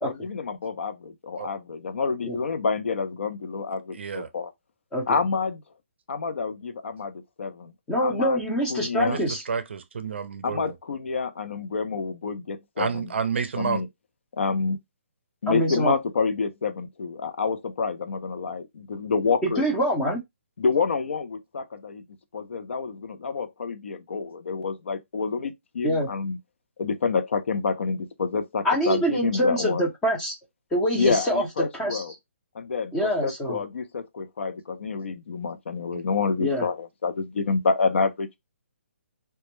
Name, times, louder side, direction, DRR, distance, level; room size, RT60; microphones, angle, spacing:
voice 1, 0.0-4.5 5.1-5.6 6.1-7.7 8.0-8.4 8.7-9.2 10.4-13.1 13.6-13.9 14.4-14.8 15.4-19.7 20.6-22.0 22.3-26.4 26.8-29.9 30.9-32.1 32.5-38.4, left 4 dB, 60° left, 0.4 m, -28 dB
voice 2, 3.9-4.3 9.0-10.7 12.8-13.8 35.9-36.0, right 6 dB, 55° right, 0.5 m, -30 dB
voice 3, 7.9-9.4 15.5-16.0 19.4-20.2 25.8-26.1 28.6-30.3 30.7-31.4 31.7-32.0 32.9-33.6 36.4-36.7, equal, 5° left, 0.5 m, -25 dB
2.1 x 2.0 x 3.0 m
hypercardioid pair, 175°, 7 cm